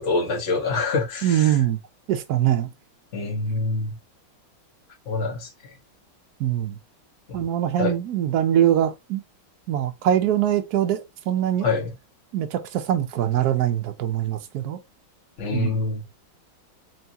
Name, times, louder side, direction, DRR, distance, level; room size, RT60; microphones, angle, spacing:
voice 1, 0.0-1.6 3.1-3.9 5.0-5.5 7.3-7.5 7.8-7.9 11.6-11.9 15.4-16.0, left 3 dB, 40° left, 1.5 m, -25 dB
voice 2, 1.2-1.8 2.1-2.7 6.4-6.8 7.3-9.2 9.7-11.7 12.3-14.8 15.5-15.8, right 11 dB, 70° right, 0.9 m, -23 dB
4.6 x 3.0 x 2.7 m
omnidirectional pair, 2.3 m